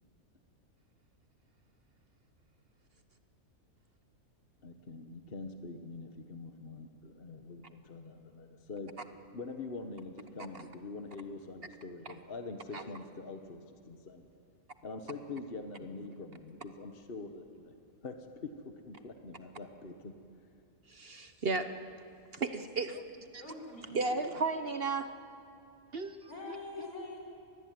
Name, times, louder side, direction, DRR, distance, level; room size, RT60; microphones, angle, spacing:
voice 1, 4.6-8.9 9.3-14.3 14.8-17.7 18.0-20.2, left 3 dB, 40° left, 6 dB, 1.5 m, -44 dB
voice 2, 20.9-21.8 22.3-23.0 23.3-23.4 23.9-25.1 25.9-26.2, right 3 dB, 45° right, 9 dB, 1.1 m, -34 dB
voice 3, 23.3-24.3 26.3-27.2, left 3 dB, 85° left, 0 dB, 5.8 m, -44 dB
25.5 x 20.0 x 9.5 m, 2.5 s
omnidirectional pair, 1.5 m